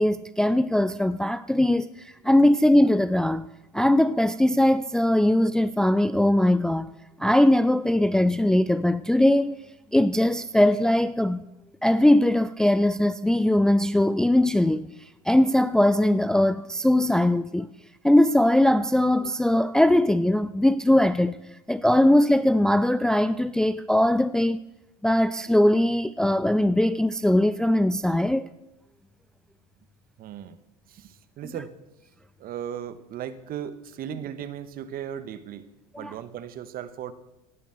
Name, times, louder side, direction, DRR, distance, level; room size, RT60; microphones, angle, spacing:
voice 1, 0.0-3.5 3.7-6.9 7.2-9.5 9.9-11.4 11.8-14.9 15.3-17.7 18.0-21.4 21.7-24.6 25.0-28.5 36.0-36.1, left 1 dB, 5° left, 0.4 m, -20 dB
voice 2, 30.2-30.6 30.9-31.7 32.4-35.6 36.0-37.1, right 10 dB, 45° right, 1.4 m, -36 dB
17.0 x 9.1 x 6.6 m
hypercardioid pair, 85°, 20 cm